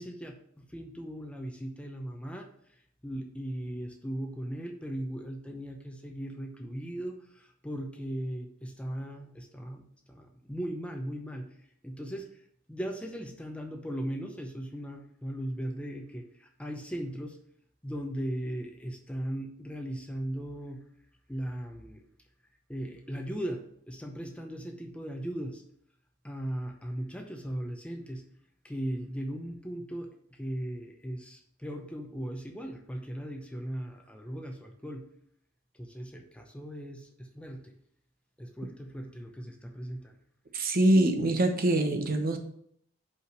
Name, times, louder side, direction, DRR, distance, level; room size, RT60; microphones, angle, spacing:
voice 1, 0.0-11.5 11.8-12.4 12.7-17.4 17.8-20.8 21.3-22.0 22.7-25.6 26.2-28.2 28.6-35.1 35.7-37.7 38.4-40.2, right 1 dB, 5° left, 3 dB, 0.7 m, -38 dB
voice 2, 40.5-42.4, right 1 dB, 45° right, 5 dB, 0.9 m, -24 dB
5.5 x 5.0 x 6.1 m, 0.67 s
head